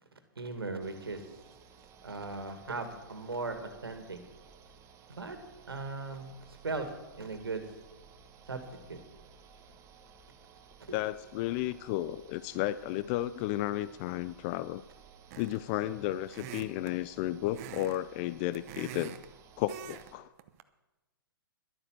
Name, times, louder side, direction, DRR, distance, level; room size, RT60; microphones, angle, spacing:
voice 1, 0.4-1.2 2.0-4.2 5.1-5.4 5.7-6.9 7.2-7.7 8.5-9.0 10.9-11.0, right 3 dB, 90° right, 7 dB, 2.1 m, -38 dB
sound 1, 0.8-20.1, right 6 dB, 25° right, 1.1 m, -57 dB
voice 2, 10.9-14.8 15.4-19.2 19.6-20.3, left 14 dB, 35° left, 16 dB, 0.3 m, -33 dB
sound 2, 15.3-15.7 16.3-16.9 17.5-18.0 18.3-19.3 19.7-20.1 20.4-20.6, right 11 dB, 40° right, 0.9 m, -44 dB
12.0 x 8.9 x 7.5 m, 1.1 s
hypercardioid pair, 125°, 12 cm